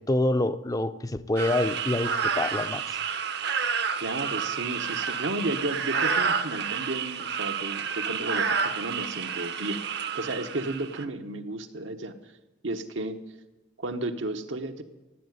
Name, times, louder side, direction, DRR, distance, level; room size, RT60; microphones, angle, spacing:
voice 1, 0.0-3.0, left 1 dB, 20° left, 0.5 m, -27 dB
sound 1, 1.4-11.1, right 6 dB, 60° right, 0.9 m, -30 dB
voice 2, 4.0-9.9 10.1-12.2 12.6-13.2 13.8-14.8, right 2 dB, 80° right, 1.2 m, -33 dB
15.5 x 8.5 x 9.5 m
head